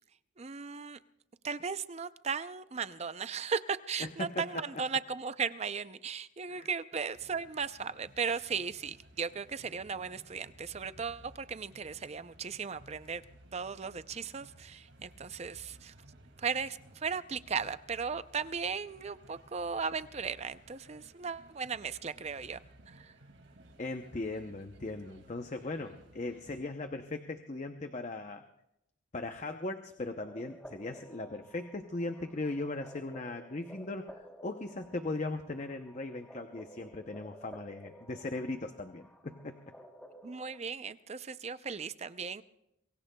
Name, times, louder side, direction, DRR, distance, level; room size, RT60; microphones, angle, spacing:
voice 1, 0.4-1.0 1.4-13.2 13.5-15.9 16.4-22.6 22.9-23.1 40.2-42.4, right 5 dB, 35° right, 0.5 m, -36 dB
voice 2, 4.0-4.6 6.5-6.7 23.8-28.4 29.1-39.7, left 2 dB, 35° left, 0.7 m, -38 dB
sound 1, 7.1-26.6, right 1 dB, 65° right, 2.3 m, -58 dB
sound 2, 30.3-40.6, equal, 5° left, 1.1 m, -53 dB
27.0 x 22.5 x 2.3 m
head